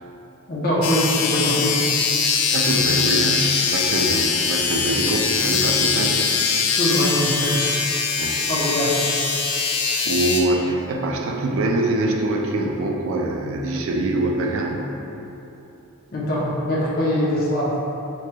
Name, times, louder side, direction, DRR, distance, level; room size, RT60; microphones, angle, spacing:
voice 1, 0.5-1.8 6.7-7.7 8.5-9.0 16.1-17.7, equal, 40° left, -6 dB, 0.6 m, -22 dB
sound 1, 0.8-10.4, left 6 dB, 80° left, 0.3 m, -22 dB
voice 2, 2.5-6.3 8.1-8.4 9.7-15.0, right 1 dB, 60° right, 1 dB, 0.3 m, -24 dB
4.5 x 2.8 x 2.2 m, 3.0 s
head